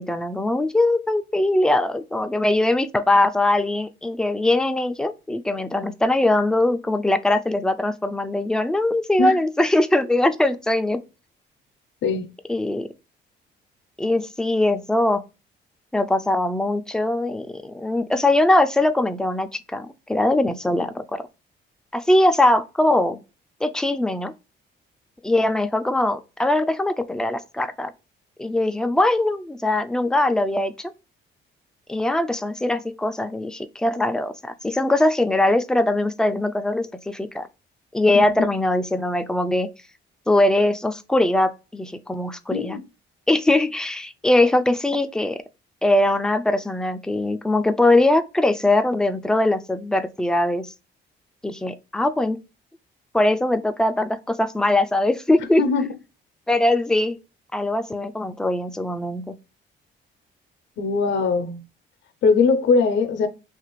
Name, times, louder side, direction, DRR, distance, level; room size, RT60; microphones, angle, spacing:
voice 1, 0.0-11.0 12.5-12.9 14.0-15.2 15.9-21.2 21.9-23.2 23.6-24.3 25.2-27.9 28.4-30.9 31.9-37.5 37.9-39.7 40.3-42.8 43.3-45.4 45.8-50.7 51.4-52.4 53.1-55.6 56.5-57.2 57.5-59.4, left 1 dB, 5° left, 0.3 m, -21 dB
voice 2, 42.5-42.8 55.6-55.8 60.8-61.6 62.2-63.3, left 4 dB, 65° left, 0.5 m, -20 dB
2.9 x 2.4 x 3.0 m
cardioid pair, 90°, 20 cm